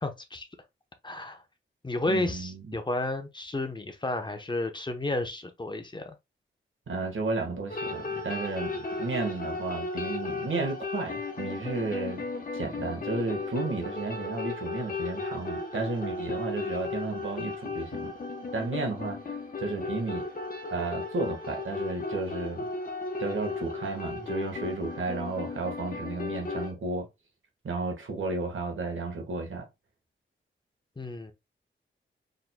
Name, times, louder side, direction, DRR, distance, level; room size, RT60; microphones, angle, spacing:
voice 1, 0.0-0.4 1.0-1.4 1.8-6.1 31.0-31.3, left 2 dB, 20° left, 0.9 m, -32 dB
voice 2, 2.1-2.8 6.9-12.2 12.5-18.1 18.5-20.3 20.7-22.7 23.2-27.1 27.6-29.7, right 3 dB, 75° right, 1.5 m, -33 dB
sound 1, 7.7-26.7, left 3 dB, 45° left, 1.1 m, -35 dB
4.4 x 3.8 x 2.2 m
wide cardioid pair, 85°, 21 cm